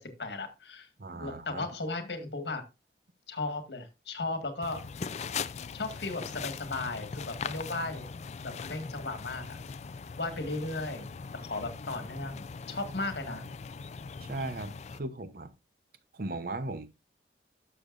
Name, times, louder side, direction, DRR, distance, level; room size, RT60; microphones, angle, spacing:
voice 1, 0.0-0.9 1.2-2.6 3.3-4.8 5.7-8.1 8.4-9.6 10.2-13.4, left 2 dB, 75° left, 1.8 m, -36 dB
voice 2, 1.0-1.7 14.2-15.5 16.1-16.9, right 2 dB, 55° right, 0.8 m, -37 dB
sound 1, 4.6-15.0, left 5 dB, 40° left, 0.4 m, -40 dB
12.0 x 6.8 x 2.5 m
head